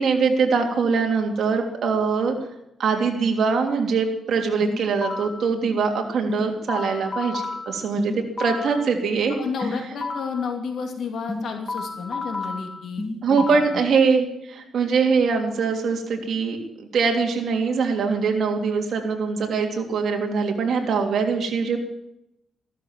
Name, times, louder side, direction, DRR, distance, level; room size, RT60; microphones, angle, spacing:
voice 1, 0.0-2.3 2.8-9.4 13.2-21.8, right 5 dB, 60° right, 2 dB, 3.1 m, -23 dB
sound 1, 4.6-5.5 6.3-8.8 9.6-10.5 11.3-13.8, left 3 dB, 20° left, 2.4 m, -31 dB
voice 2, 9.4-13.6, left 5 dB, 65° left, 3 dB, 2.8 m, -31 dB
15.0 x 12.5 x 7.5 m, 0.82 s
cardioid pair, 150°, 0 cm